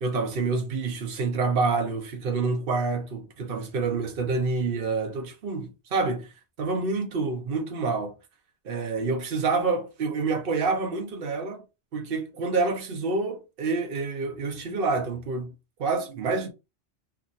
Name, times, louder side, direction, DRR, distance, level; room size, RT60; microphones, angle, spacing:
voice 1, 0.0-6.3 6.6-8.1 8.6-11.6 11.9-15.5 15.8-16.5, right 4 dB, 60° right, 0.9 m, -27 dB
2.8 x 2.5 x 2.6 m
omnidirectional pair, 1.1 m